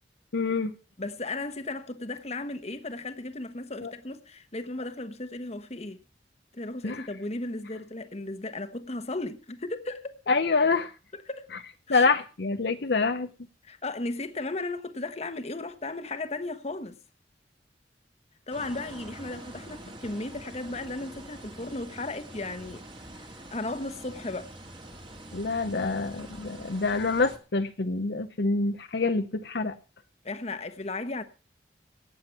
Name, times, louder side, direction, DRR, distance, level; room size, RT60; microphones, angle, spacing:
voice 1, 0.3-0.7 3.8-3.9 6.8-7.0 10.3-10.9 11.9-13.3 25.3-29.7, left 3 dB, 65° left, 0.8 m, -26 dB
voice 2, 1.0-6.0 6.5-10.2 11.1-11.5 11.9-12.1 13.6-17.0 18.5-22.8 23.1-24.5 30.2-31.2, left 2 dB, 35° left, 1.2 m, -35 dB
sound 1, 18.5-27.4, right 1 dB, 30° right, 2.1 m, -45 dB
17.5 x 7.9 x 5.8 m
head